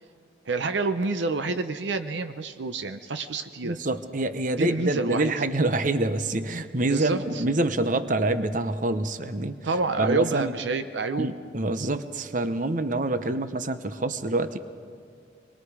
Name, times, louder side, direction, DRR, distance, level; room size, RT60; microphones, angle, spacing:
voice 1, 0.5-3.8 4.6-5.3 6.9-7.4 9.6-11.3, right 3 dB, 70° right, 9 dB, 0.7 m, -28 dB
voice 2, 3.6-9.6 10.0-10.5 11.2-14.6, right 2 dB, 45° right, 11 dB, 0.9 m, -26 dB
25.0 x 21.5 x 4.8 m, 2.3 s
head